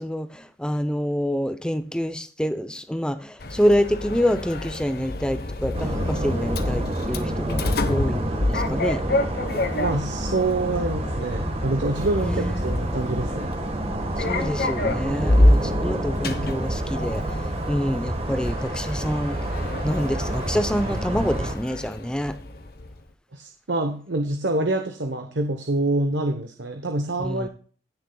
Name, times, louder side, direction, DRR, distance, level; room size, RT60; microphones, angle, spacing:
voice 1, 0.0-9.0 12.2-12.8 14.2-17.3 17.7-19.4 19.8-22.4 27.2-27.5, equal, 5° left, 0.7 m, -26 dB
Sliding door, 3.4-23.0, left 1 dB, 55° left, 1.0 m, -28 dB
sound 1, 5.7-21.6, right 1 dB, 35° right, 1.4 m, -29 dB
voice 2, 9.8-13.5 23.3-27.5, right 2 dB, 75° right, 1.0 m, -26 dB
16.5 x 6.6 x 2.3 m
head